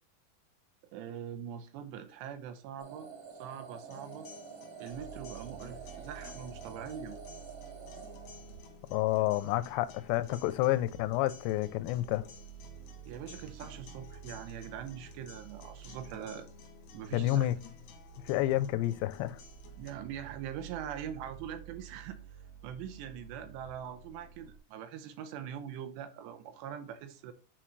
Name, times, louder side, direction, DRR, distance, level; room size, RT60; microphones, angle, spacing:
voice 1, 0.9-3.1 3.4-4.3 4.8-7.2 9.2-9.3 13.1-16.5 16.9-17.5 19.8-22.2 22.6-27.3, right 8 dB, 90° right, 2.9 m, -42 dB
sound 1, 2.8-8.9, right 6 dB, 65° right, 1.9 m, -48 dB
sound 2, 3.9-19.9, left 8 dB, 70° left, 1.8 m, -54 dB
sound 3, 4.9-24.6, right 8 dB, 45° right, 2.8 m, -52 dB
voice 2, 8.9-12.2 17.1-17.6 18.3-19.4, left 15 dB, 85° left, 2.7 m, -29 dB
9.1 x 3.9 x 3.1 m
omnidirectional pair, 4.9 m